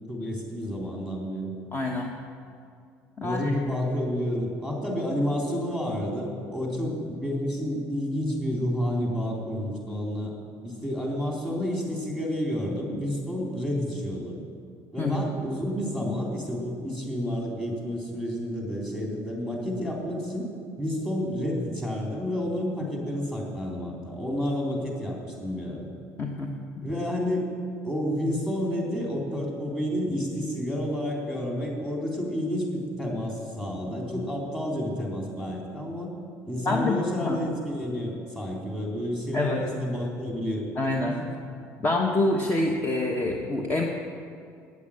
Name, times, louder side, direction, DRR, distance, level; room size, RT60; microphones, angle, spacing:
voice 1, 0.1-1.5 3.2-10.3 10.6-14.4 14.9-20.5 20.8-25.9 26.8-27.5 27.8-36.1 36.4-40.6 41.1-41.2, equal, 10° left, -1 dB, 3.6 m, -30 dB
voice 2, 1.7-2.1 3.2-3.5 15.0-15.2 26.2-26.8 36.6-37.4 39.3-39.6 40.8-41.2 41.8-43.8, left 2 dB, 30° left, 1 dB, 1.2 m, -26 dB
9.6 x 8.4 x 8.7 m, 2.4 s
supercardioid pair, 85°, 7 cm